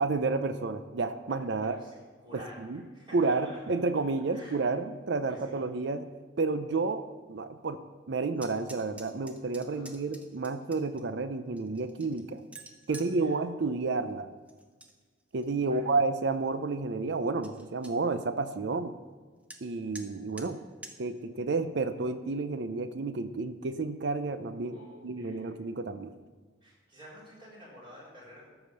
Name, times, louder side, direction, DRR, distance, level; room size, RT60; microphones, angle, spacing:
voice 1, 0.0-1.8 2.7-2.8 3.1-6.1 6.4-7.8 8.1-12.4 12.9-14.3 15.3-18.9 19.6-20.6 21.0-24.8 25.0-26.1, right 3 dB, 65° right, 11 dB, 0.5 m, -30 dB
voice 2, 1.3-2.6 2.9-3.6 4.3-4.6 5.2-5.6 9.7-10.0 12.9-13.3 15.6-15.9 24.7-25.5 26.6-28.5, equal, 25° right, -6 dB, 3.7 m, -50 dB
sound 1, 8.4-11.0 11.6-13.1 14.5-14.9 15.3-15.8 16.3-16.4 16.7-16.8 17.1-17.2 17.4-17.9 19.5-19.6 19.9-20.1 20.4-20.5 20.8-21.0, right 2 dB, 5° right, 0.7 m, -48 dB
13.0 x 4.9 x 6.5 m, 1.4 s
head